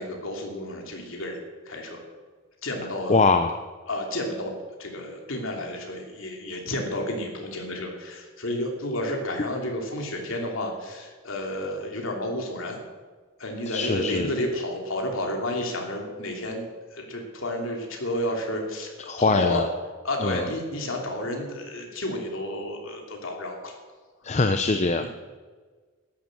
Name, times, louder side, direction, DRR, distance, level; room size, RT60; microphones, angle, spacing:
voice 1, 0.0-1.4 1.6-2.0 2.6-3.2 3.9-12.8 13.4-16.7 16.9-19.6 20.0-23.8 25.0-25.1, left 1 dB, 70° left, 1 dB, 2.8 m, -31 dB
voice 2, 3.1-3.6 13.7-14.3 19.1-19.7 20.2-20.5 24.2-25.1, left 3 dB, 30° left, 8 dB, 0.6 m, -23 dB
13.0 x 10.5 x 7.8 m, 1.4 s
head